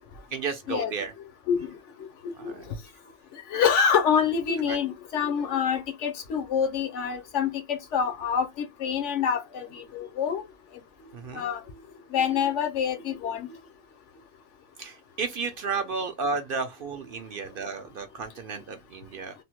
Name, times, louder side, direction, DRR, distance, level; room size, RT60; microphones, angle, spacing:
voice 1, 0.3-1.1 2.4-2.7 4.7-4.8 11.1-11.5 14.8-19.3, right 4 dB, 60° right, 0.6 m, -33 dB
voice 2, 3.5-10.4 11.3-11.6 12.1-13.5, left 7 dB, 75° left, 1.0 m, -26 dB
3.3 x 2.1 x 2.9 m
omnidirectional pair, 1.2 m